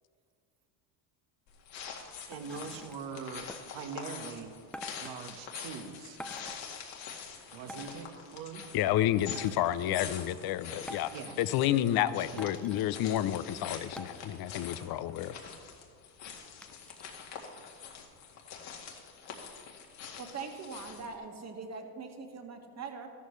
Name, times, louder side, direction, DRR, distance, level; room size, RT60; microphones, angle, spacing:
sound 1, 1.5-21.2, left 7 dB, 65° left, 2.0 m, -45 dB
voice 1, 1.9-4.5 5.0-6.2 7.5-8.6 11.1-11.4 12.3-12.5, right 6 dB, 60° right, 6 dB, 1.4 m, -43 dB
sound 2, 2.3-3.0 3.5-3.6 4.7-5.1 6.2-6.6 7.7-8.0 9.3-9.7 10.9-11.3 12.4-12.8 14.0-14.3 14.7-14.8 15.0-15.5 16.2-17.0 17.5-17.6, equal, ahead, 0.4 m, -46 dB
voice 2, 8.7-11.1 11.4-15.3, left 12 dB, 50° left, 14 dB, 0.6 m, -30 dB
voice 3, 20.2-23.1, right 5 dB, 35° right, 4 dB, 1.7 m, -42 dB
13.5 x 12.5 x 3.2 m, 2.4 s
supercardioid pair, 95°, 48 cm